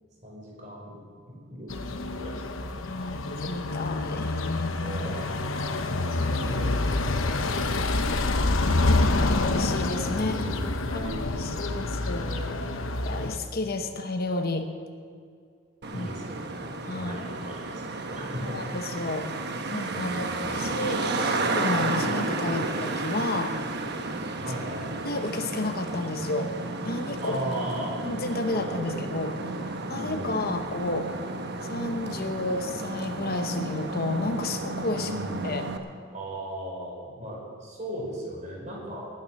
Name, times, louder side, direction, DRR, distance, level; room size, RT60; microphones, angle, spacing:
voice 1, 0.2-1.0 1.3-3.1 4.8-5.3 5.9-6.8 7.2-8.7 10.1-12.7 15.9-18.9 19.9-20.7 22.5-22.7 24.4-25.0 27.2-27.9 28.5-29.1 29.3-29.5 29.9-30.4 35.0-35.5 36.1-39.1, right 1 dB, 35° right, -3 dB, 5.0 m, -38 dB
sound 1, 1.7-13.4, left 2 dB, 75° left, 0.9 m, -27 dB
voice 2, 2.8-4.4 6.2-6.4 9.1-10.3 10.9-12.3 13.0-14.7 15.9-16.1 16.9-17.2 18.4-19.3 19.7-22.6 23.0-23.5 25.0-26.5 26.8-27.4 28.0-29.4 29.9-31.1 31.6-35.1 35.4-35.6, left 2 dB, 50° left, 6 dB, 0.9 m, -31 dB
Traffic noise roadway noise, 15.8-35.8, right 2 dB, 55° right, 1.1 m, -32 dB
19.0 x 9.4 x 6.4 m, 2.2 s
head